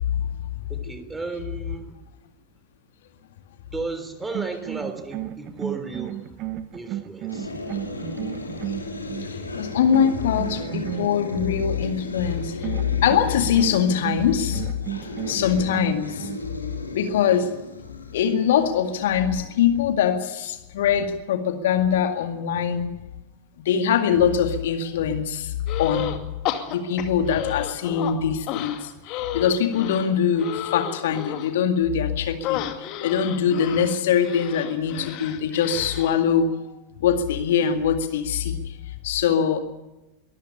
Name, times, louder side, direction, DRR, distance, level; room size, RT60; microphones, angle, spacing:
voice 1, 0.7-2.0 3.7-7.5, right 3 dB, 10° right, 7 dB, 3.4 m, -34 dB
sound 1, 4.2-9.4 9.9-11.5 12.6-16.5, right 13 dB, 35° right, 1.1 m, -34 dB
sound 2, 7.3-20.2, left 2 dB, 80° left, 3.2 m, -36 dB
voice 2, 8.6-14.7 15.2-16.3 16.9-17.5 18.1-22.9 23.6-26.2 26.7-36.5 37.0-39.6, left 8 dB, 55° left, 7 dB, 2.0 m, -23 dB
sound 3, 25.7-26.2 26.4-28.1 28.5-31.5 32.4-36.2, left 12 dB, 40° left, 2.3 m, -32 dB
23.0 x 14.0 x 9.9 m, 0.99 s
figure-of-eight pair, 90°, 0 cm